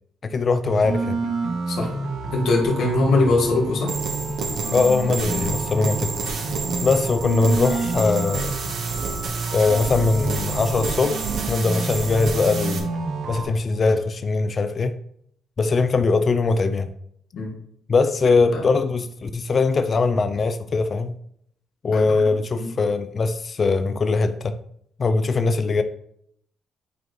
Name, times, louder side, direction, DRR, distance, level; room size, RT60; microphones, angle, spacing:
voice 1, 0.2-1.2 4.7-6.1 6.8-8.5 9.5-12.9 13.3-14.9 15.6-16.9 17.9-21.1 21.8-24.6 25.0-25.8, left 4 dB, 40° left, 0.4 m, -21 dB
sound 1, 0.6-13.4, right 3 dB, 85° right, 1.4 m, -29 dB
voice 2, 2.3-3.9 17.3-17.5 18.2-18.6 21.9-22.3 22.6-22.7, left 2 dB, 70° left, 1.6 m, -22 dB
sound 2, 3.9-12.8, right 4 dB, 70° right, 1.2 m, -30 dB
9.1 x 4.5 x 3.2 m
cardioid pair, 90°, 0 cm